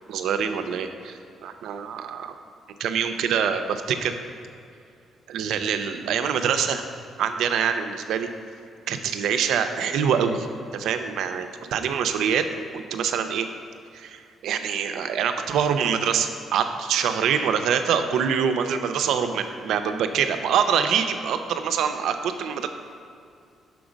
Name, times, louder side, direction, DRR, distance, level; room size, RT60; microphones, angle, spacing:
voice 1, 0.1-2.3 2.8-4.1 5.3-6.9 7.2-8.3 8.9-10.5 10.7-12.5 12.7-13.5 13.9-22.7, right 7 dB, 80° right, 8 dB, 0.5 m, -25 dB
6.0 x 4.5 x 5.1 m, 2.4 s
cardioid pair, 90°, 0 cm